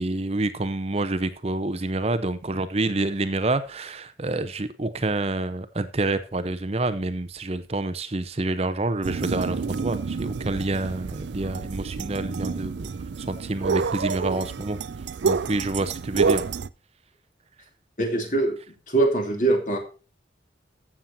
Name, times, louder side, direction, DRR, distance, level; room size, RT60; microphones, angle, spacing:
voice 1, 0.0-12.9 13.2-14.8 15.2-16.4, right 2 dB, 35° right, 11 dB, 0.7 m, -28 dB
sound 1, 9.0-16.7, right 5 dB, 70° right, 0.4 m, -28 dB
voice 2, 18.0-18.6 18.9-19.8, right 2 dB, 45° left, 3 dB, 2.7 m, -22 dB
15.0 x 7.4 x 2.7 m, 0.35 s
head